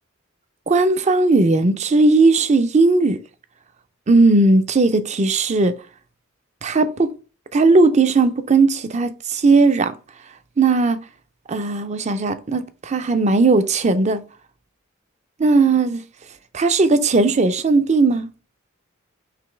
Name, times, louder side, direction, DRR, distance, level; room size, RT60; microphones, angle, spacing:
voice 1, 0.7-3.2 4.1-5.7 6.6-7.1 7.5-9.9 10.6-11.0 11.5-14.2 15.4-16.0 16.5-18.3, right 3 dB, 35° right, 0.5 m, -17 dB
5.1 x 3.1 x 3.3 m
head